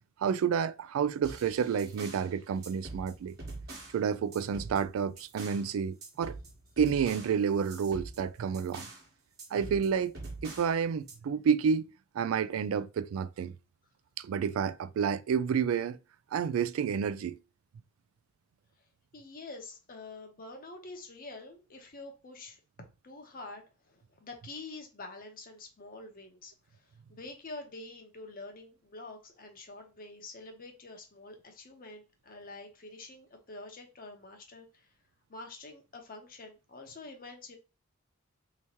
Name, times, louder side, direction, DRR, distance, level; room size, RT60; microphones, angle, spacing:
voice 1, 0.2-3.4 3.9-6.4 6.8-8.9 9.5-10.1 10.4-11.9 12.1-13.5 14.2-16.0 16.3-17.4, right 7 dB, 90° right, 0.3 m, -30 dB
sound 1, 1.2-2.3 2.6-4.0 4.3-5.7 6.0-9.1 9.4-10.7 11.1-11.2, right 2 dB, 55° right, 1.2 m, -45 dB
voice 2, 19.1-34.9 35.3-37.6, left 3 dB, 45° left, 0.8 m, -47 dB
3.4 x 3.0 x 2.8 m
head